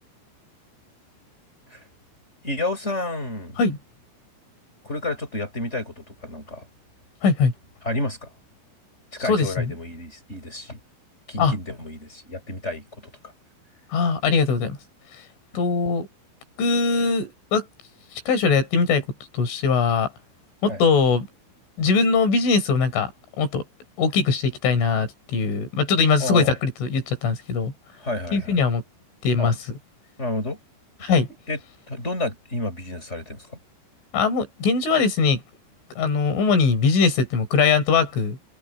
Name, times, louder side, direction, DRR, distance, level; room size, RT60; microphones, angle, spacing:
voice 1, 2.4-3.6 4.8-6.7 7.8-8.3 9.1-10.8 11.3-12.8 20.7-20.8 26.2-26.6 28.0-28.6 29.4-29.5 30.2-30.6 31.5-31.6 31.9-33.5, left 2 dB, 15° left, 5.7 m, -30 dB
voice 2, 7.2-7.5 9.2-9.7 11.4-11.5 13.9-14.8 15.6-16.1 16.6-17.7 18.3-19.1 19.3-20.1 20.6-21.3 21.8-23.1 23.4-23.6 24.0-27.7 28.3-28.8 29.2-29.6 31.0-31.3 34.1-35.4 36.0-38.4, left 5 dB, 70° left, 6.5 m, -21 dB
omnidirectional pair, 5.8 m